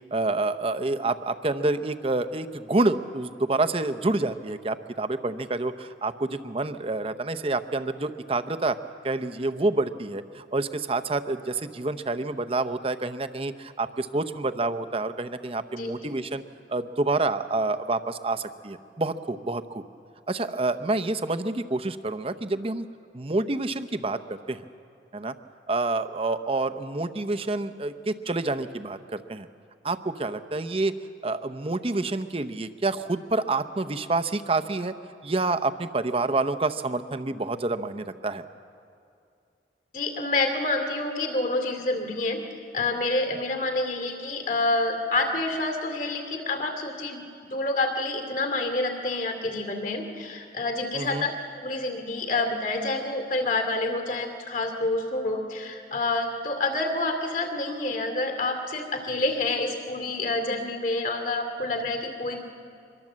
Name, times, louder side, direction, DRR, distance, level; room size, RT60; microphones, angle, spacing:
voice 1, 0.1-8.8 9.0-16.4 16.7-19.8 20.3-22.9 23.1-24.6 25.1-25.3 25.7-29.5 29.8-30.9 31.2-34.9 35.2-38.4 50.9-51.3, right 2 dB, 30° right, 10 dB, 0.7 m, -28 dB
voice 2, 39.9-42.4 42.7-47.2 47.5-51.3 51.6-62.4, left 2 dB, 50° left, 5 dB, 2.5 m, -28 dB
24.0 x 23.0 x 7.5 m, 2.5 s
head